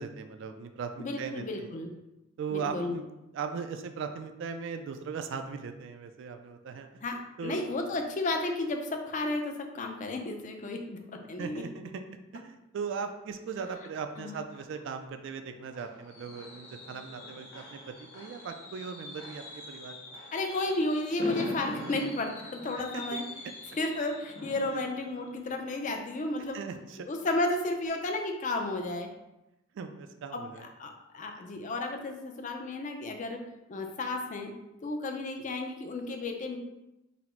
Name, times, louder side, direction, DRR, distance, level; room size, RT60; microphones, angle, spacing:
voice 1, 0.0-1.7 2.4-7.0 7.4-7.6 11.4-12.0 12.3-19.9 22.9-23.0 24.7-24.9 26.5-27.0 29.8-30.7, right 5 dB, 60° right, 7 dB, 0.3 m, -38 dB
voice 2, 1.0-1.9 2.5-2.9 7.0-11.6 14.2-14.4 20.3-23.2 23.7-26.6 27.0-29.1 30.3-33.4 33.7-34.5 34.8-36.6, left 2 dB, 35° left, 4 dB, 0.4 m, -33 dB
Fireworks, 15.1-26.8 27.1-27.4 27.7-27.8, left 1 dB, 60° left, 1.1 m, -44 dB
4.0 x 2.0 x 4.3 m, 0.94 s
head